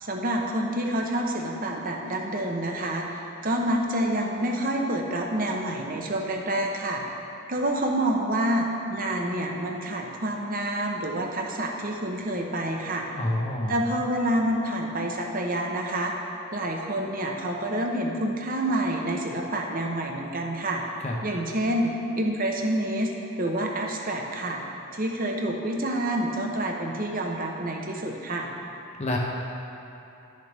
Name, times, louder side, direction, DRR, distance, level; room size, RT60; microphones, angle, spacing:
voice 1, 0.0-7.0 7.5-13.1 13.7-16.1 16.5-20.8 21.2-23.1 23.4-24.6 24.9-28.5, right 1 dB, 40° right, 1 dB, 0.8 m, -28 dB
voice 2, 13.1-13.7 21.0-21.1 29.0-29.2, left 1 dB, 30° left, -2 dB, 0.7 m, -27 dB
11.5 x 6.7 x 3.4 m, 2.9 s
head